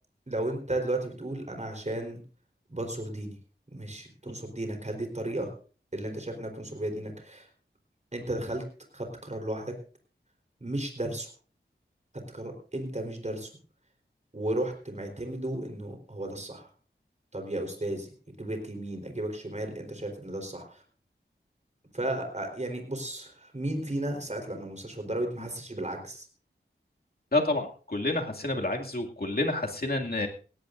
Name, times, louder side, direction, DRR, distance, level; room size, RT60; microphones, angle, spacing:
voice 1, 0.3-2.2 2.7-3.3 3.7-5.5 5.9-7.5 8.1-8.6 8.9-9.7 10.6-11.3 12.3-13.5 14.3-16.6 17.3-18.1 18.4-20.8 21.9-26.3, right 1 dB, 35° right, 3 dB, 4.1 m, -34 dB
voice 2, 27.3-30.3, left 2 dB, 50° left, 2 dB, 2.5 m, -29 dB
18.0 x 17.0 x 2.6 m, 0.38 s
wide cardioid pair, 65°, 20 cm